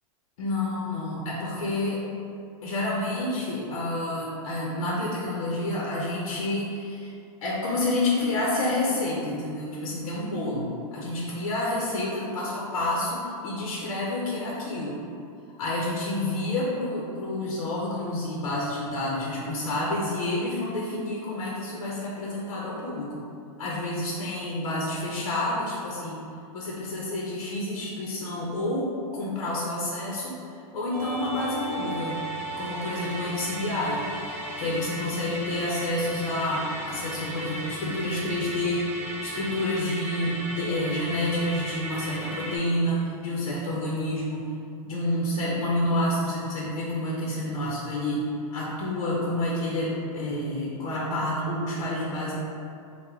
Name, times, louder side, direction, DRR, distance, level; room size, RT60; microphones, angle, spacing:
voice 1, 0.4-2.0 2.6-7.1 7.4-15.0 15.6-23.3 23.6-26.2 26.5-32.2 32.6-34.0 34.6-44.5 44.8-52.3, left 1 dB, 65° left, -4 dB, 0.7 m, -29 dB
Musical instrument, 30.9-42.6, right 1 dB, 10° right, 0.8 m, -36 dB
3.7 x 2.2 x 4.3 m, 2.5 s
supercardioid pair, 165°, 18 cm